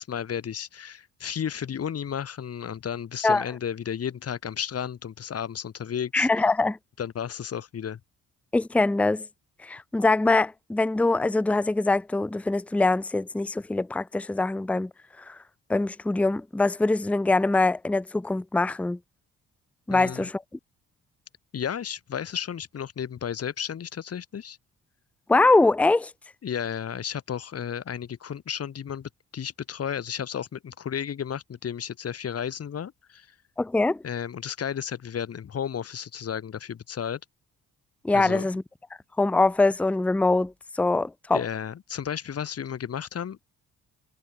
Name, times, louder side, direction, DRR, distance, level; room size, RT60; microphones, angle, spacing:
voice 1, 0.0-6.3 7.0-8.0 19.9-20.3 21.5-24.6 26.4-33.3 34.0-37.2 38.1-38.5 41.3-43.5, left 8 dB, 50° left, 3.3 m, -33 dB
voice 2, 6.1-6.8 8.5-9.2 9.6-14.9 15.3-15.4 15.7-19.0 19.9-20.4 25.3-26.1 33.6-34.0 38.0-38.6 39.2-41.4, left 2 dB, 5° left, 0.6 m, -23 dB
cardioid pair, 90°, 30 cm